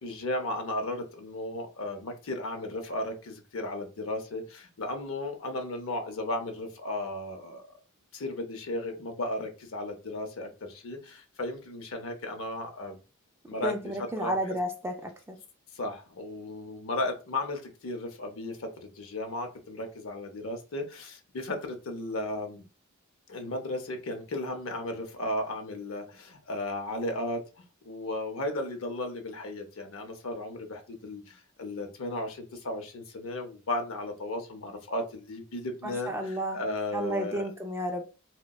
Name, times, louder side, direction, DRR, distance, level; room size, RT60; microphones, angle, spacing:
voice 1, 0.0-7.8 8.1-13.0 13.5-14.6 15.7-22.6 23.3-27.5 27.8-37.4, left 1 dB, 65° left, 0.6 m, -35 dB
voice 2, 13.6-15.4 35.8-36.6 36.9-38.0, right 1 dB, 10° right, 0.4 m, -32 dB
3.8 x 2.1 x 2.2 m
head